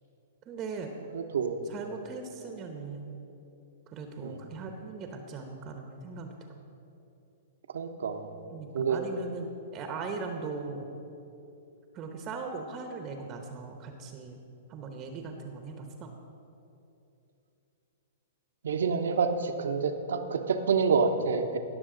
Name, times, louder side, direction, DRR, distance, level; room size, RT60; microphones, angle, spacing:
voice 1, 0.5-0.9 1.6-3.2 3.9-6.6 8.5-10.9 11.9-14.4 14.7-16.1, right 4 dB, 30° right, 4 dB, 1.0 m, -39 dB
voice 2, 1.1-1.6 4.2-4.4 7.7-8.4 8.7-9.0 18.6-21.6, right 5 dB, 75° right, 6 dB, 0.9 m, -28 dB
19.0 x 6.7 x 3.9 m, 2.9 s
hypercardioid pair, 115°, 0 cm